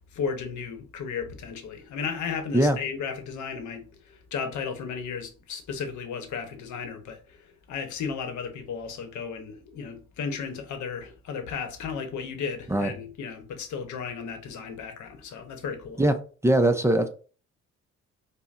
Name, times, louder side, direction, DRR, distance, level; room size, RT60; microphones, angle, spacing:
voice 1, 0.1-16.0, left 6 dB, 75° left, 0.9 m, -34 dB
voice 2, 16.4-17.1, right 1 dB, 10° right, 0.5 m, -21 dB
5.3 x 2.2 x 2.5 m
cardioid pair, 90°, 30 cm